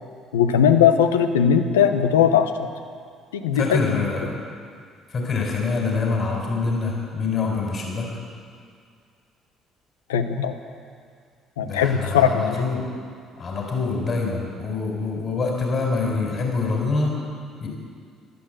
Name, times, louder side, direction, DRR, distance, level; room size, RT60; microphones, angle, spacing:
voice 1, 0.3-2.7 3.3-4.0 10.1-10.6 11.6-12.6, left 8 dB, 90° left, 8 dB, 0.9 m, -19 dB
voice 2, 3.5-4.4 5.1-8.1 11.6-12.9 13.4-17.2 17.6-17.7, left 4 dB, 45° left, 0 dB, 4.3 m, -25 dB
15.5 x 12.0 x 7.8 m, 2.2 s
hypercardioid pair, 55°, 0 cm